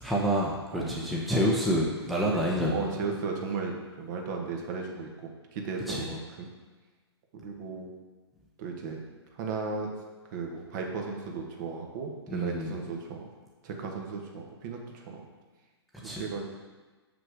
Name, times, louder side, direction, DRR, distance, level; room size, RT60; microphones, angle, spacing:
voice 1, 0.0-2.9 5.9-6.1 12.3-12.8 16.0-16.2, equal, ahead, -4 dB, 0.8 m, -28 dB
voice 2, 2.7-6.5 7.3-7.9 8.6-9.0 9.4-9.9 10.3-13.3 13.6-15.2 16.0-16.4, right 4 dB, 40° right, 2 dB, 1.4 m, -35 dB
6.8 x 5.9 x 4.8 m, 1.3 s
hypercardioid pair, 130°, 14 cm